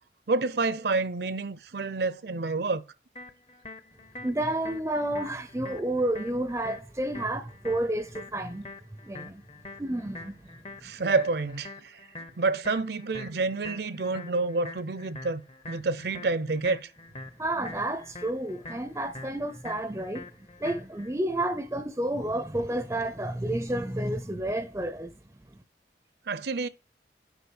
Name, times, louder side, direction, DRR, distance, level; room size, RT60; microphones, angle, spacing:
voice 1, 0.3-2.8 10.8-12.0 12.4-15.4 15.7-16.9 26.3-26.7, right 3 dB, 65° right, 0.6 m, -28 dB
sound 1, 3.2-21.1, left 2 dB, 35° left, 0.7 m, -45 dB
voice 2, 4.2-8.7 9.0-9.4 9.8-10.4 17.4-20.3 20.6-25.1 25.5-25.6, right 1 dB, 15° right, 0.5 m, -30 dB
8.2 x 5.2 x 6.1 m
head